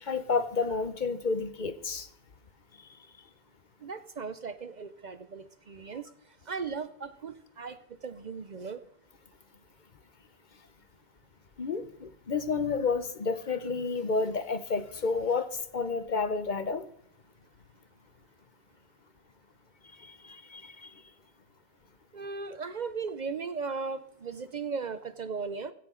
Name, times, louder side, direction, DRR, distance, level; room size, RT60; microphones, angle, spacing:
voice 1, 0.0-2.1 11.6-16.8 20.0-20.9, left 4 dB, 50° left, 12 dB, 0.9 m, -30 dB
voice 2, 3.8-6.1 6.4-8.8 22.1-25.7, right 5 dB, 50° right, 13 dB, 0.7 m, -37 dB
16.5 x 14.0 x 3.8 m, 0.68 s
omnidirectional pair, 1.0 m